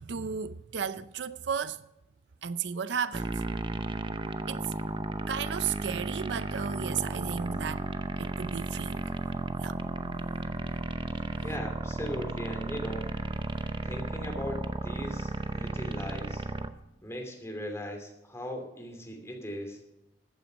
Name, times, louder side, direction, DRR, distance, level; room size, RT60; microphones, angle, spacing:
voice 1, 0.0-1.8 2.4-3.3 4.5-4.7 5.3-7.9 8.2-9.0 9.6-9.8, right 7 dB, 75° right, 0.5 m, -34 dB
sound 1, 3.1-16.7, right 2 dB, 30° right, 0.7 m, -34 dB
voice 2, 11.4-13.1 13.8-16.4 17.0-19.8, equal, 15° left, 2.7 m, -38 dB
14.5 x 9.1 x 5.3 m
head